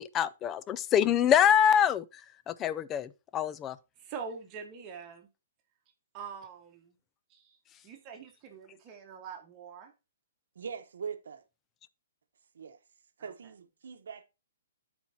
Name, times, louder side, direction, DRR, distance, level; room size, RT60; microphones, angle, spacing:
voice 1, 0.0-2.1 2.5-3.8, left 9 dB, 20° left, 0.4 m, -25 dB
voice 2, 4.0-5.3 6.1-7.0 7.3-9.9 13.2-13.5, right 6 dB, 30° right, 1.2 m, -44 dB
voice 3, 10.5-11.4 12.5-12.8 13.2-14.2, right 6 dB, 80° right, 0.9 m, -41 dB
13.0 x 4.4 x 2.7 m
hypercardioid pair, 150°, 0 cm